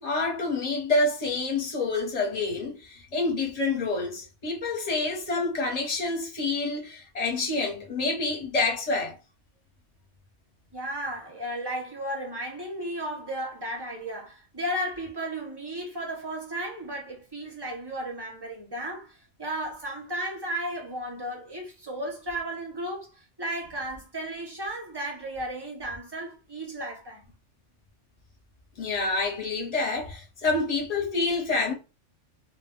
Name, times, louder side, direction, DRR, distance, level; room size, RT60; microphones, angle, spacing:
voice 1, 0.0-9.2 28.8-31.7, left 3 dB, 35° left, 0.7 m, -27 dB
voice 2, 10.7-27.3, right 1 dB, 35° right, 0.4 m, -34 dB
2.1 x 2.1 x 3.6 m
omnidirectional pair, 1.3 m